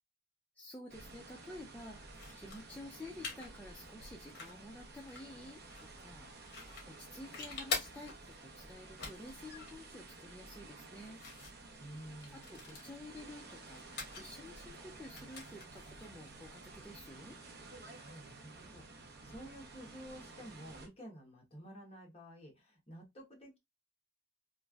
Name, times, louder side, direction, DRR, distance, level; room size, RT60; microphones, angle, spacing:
voice 1, 0.5-11.2 12.3-17.4, left 1 dB, 5° left, 0.3 m, -51 dB
sound 1, 0.9-20.9, right 3 dB, 50° right, 0.7 m, -53 dB
sound 2, 2.1-17.3, left 4 dB, 50° left, 1.1 m, -47 dB
voice 2, 11.8-12.5 18.0-23.6, equal, 30° left, 1.0 m, -51 dB
3.1 x 2.4 x 2.3 m
head